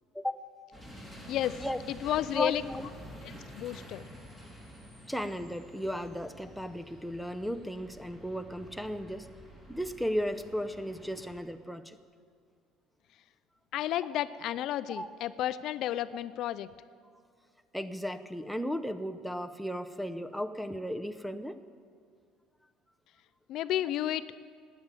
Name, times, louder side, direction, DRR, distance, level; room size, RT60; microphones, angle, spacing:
sound 1, 0.7-11.4, equal, 20° right, 3.2 m, -49 dB
voice 1, 1.0-2.6 3.2-4.1 13.7-16.7 23.5-24.3, left 12 dB, 65° left, 14 dB, 0.4 m, -32 dB
voice 2, 2.3-2.8 5.1-9.3 9.7-12.0 14.9-15.1 17.7-21.6, equal, ahead, 7 dB, 0.7 m, -35 dB
13.0 x 9.1 x 9.0 m, 2.2 s
cardioid pair, 110°, 0 cm